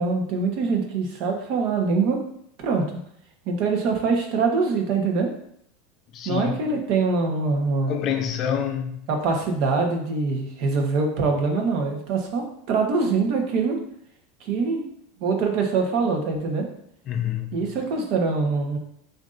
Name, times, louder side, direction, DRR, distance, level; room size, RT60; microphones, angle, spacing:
voice 1, 0.0-2.2 2.6-3.0 3.5-5.3 6.2-8.0 9.1-13.8 14.4-14.8 15.2-16.6 17.5-18.8, right 4 dB, 55° right, 1.0 m, -24 dB
voice 2, 6.1-6.5 7.9-9.0 17.1-17.7, left 9 dB, 40° left, 0.5 m, -27 dB
7.9 x 2.6 x 2.5 m
supercardioid pair, 140°, 0 cm